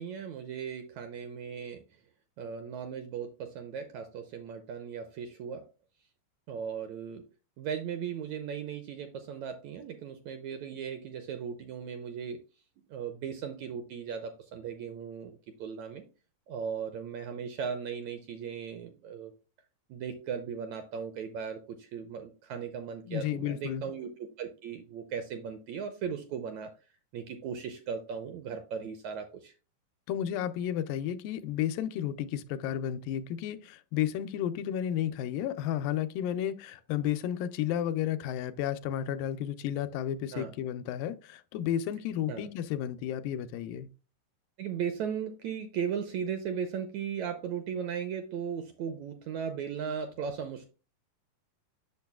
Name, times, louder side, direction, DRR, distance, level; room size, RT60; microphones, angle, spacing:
voice 1, 0.0-1.8 2.4-5.6 6.5-7.2 7.6-12.4 12.9-15.3 15.6-16.0 16.5-19.3 19.9-26.7 27.1-29.5 40.3-40.5 42.3-42.5 44.6-50.7, right 7 dB, 80° right, 1.7 m, -37 dB
voice 2, 23.1-23.8 30.1-43.9, left 10 dB, 85° left, 2.2 m, -32 dB
8.3 x 6.5 x 2.3 m
omnidirectional pair, 3.9 m